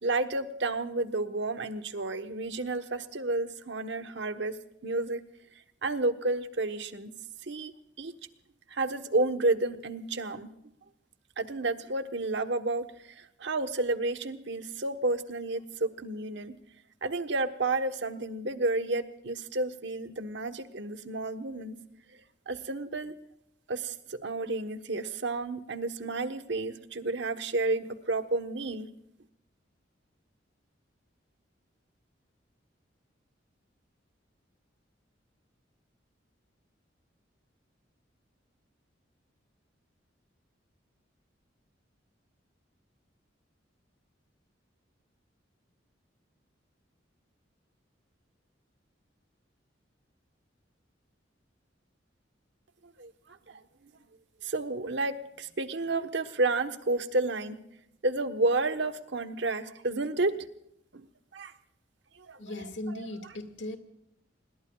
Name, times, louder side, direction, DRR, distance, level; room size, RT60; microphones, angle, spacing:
voice 1, 0.0-4.6 4.8-5.2 5.8-7.1 7.5-7.7 8.0-8.1 8.7-10.5 11.4-12.8 13.2-16.5 17.0-21.8 22.5-23.1 23.7-28.9 53.0-53.1 53.5-53.6 54.4-57.6 58.0-60.3 60.9-61.0 61.3-61.5 62.2-63.3, right 2 dB, 70° right, 9 dB, 1.2 m, -31 dB
voice 2, 62.4-63.8, left 1 dB, 75° left, 7 dB, 2.1 m, -37 dB
26.5 x 20.5 x 2.4 m, 0.80 s
head